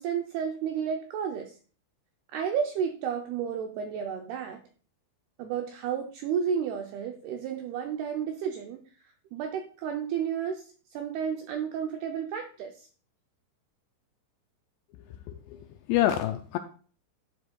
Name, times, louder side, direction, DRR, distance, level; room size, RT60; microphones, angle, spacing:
voice 1, 0.0-1.6 2.3-4.6 5.4-8.8 9.3-12.9, right 7 dB, 85° right, 5 dB, 2.2 m, -32 dB
voice 2, 15.3-15.6 15.9-16.6, left 13 dB, 85° left, 7 dB, 2.4 m, -26 dB
12.0 x 7.8 x 2.3 m, 0.41 s
omnidirectional pair, 5.3 m